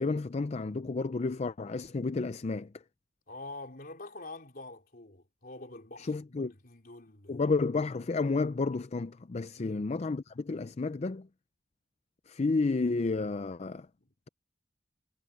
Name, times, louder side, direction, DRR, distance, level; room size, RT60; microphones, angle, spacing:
voice 1, 0.0-2.7 6.0-6.5 7.3-11.3 12.3-13.9, left 3 dB, 35° left, 0.5 m, -31 dB
voice 2, 3.3-7.4 9.5-9.9 14.0-14.1, left 2 dB, 50° left, 3.6 m, -46 dB
head